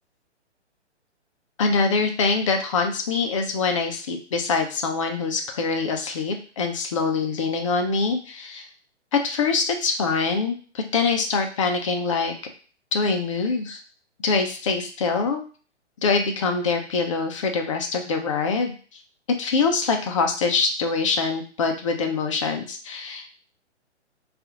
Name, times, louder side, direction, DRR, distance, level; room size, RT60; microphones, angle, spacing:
voice 1, 1.6-8.7 9.1-12.3 12.9-13.8 14.2-15.4 16.0-18.7 19.4-23.3, left 4 dB, 30° left, 4 dB, 0.4 m, -24 dB
2.7 x 2.4 x 3.6 m, 0.40 s
figure-of-eight pair, 130°, 35 cm